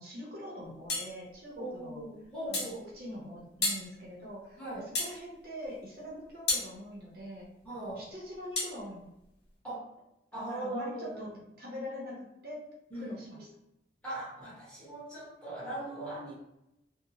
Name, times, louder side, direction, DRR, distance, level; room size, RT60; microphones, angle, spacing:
voice 1, 0.0-2.0 2.5-2.7 2.9-4.6 5.0-7.5 8.0-9.1 10.5-11.3 11.6-12.7 12.9-13.5, left 1 dB, 55° right, -3 dB, 0.7 m, -43 dB
sound 1, 0.9-1.1 2.5-2.8 3.6-3.9 4.9-5.2 6.5-6.7 8.6-8.7, left 3 dB, 70° left, 0.8 m, -31 dB
voice 2, 1.6-2.9 4.6-4.9 7.6-8.0 9.6-9.9 10.3-11.4 12.9-13.5 14.0-16.3, right 1 dB, 5° left, -9 dB, 1.0 m, -40 dB
2.6 x 2.1 x 2.8 m, 0.88 s
head